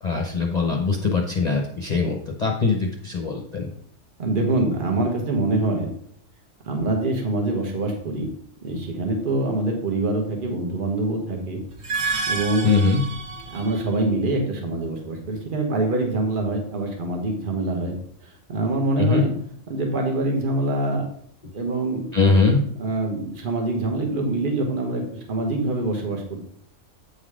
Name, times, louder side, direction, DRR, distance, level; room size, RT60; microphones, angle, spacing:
voice 1, 0.0-3.7 12.6-13.0 19.0-19.2 22.1-22.6, left 4 dB, 40° left, 1 dB, 0.7 m, -21 dB
voice 2, 4.2-5.9 6.7-8.3 8.6-11.6 12.3-12.7 13.5-17.9 18.5-19.3 19.7-21.1 21.5-22.1 22.8-25.0 25.3-26.2, right 2 dB, 40° right, 2 dB, 1.3 m, -24 dB
sound 1, 11.7-13.9, right 4 dB, 60° right, 1.5 m, -29 dB
8.4 x 4.0 x 4.9 m, 0.66 s
omnidirectional pair, 1.4 m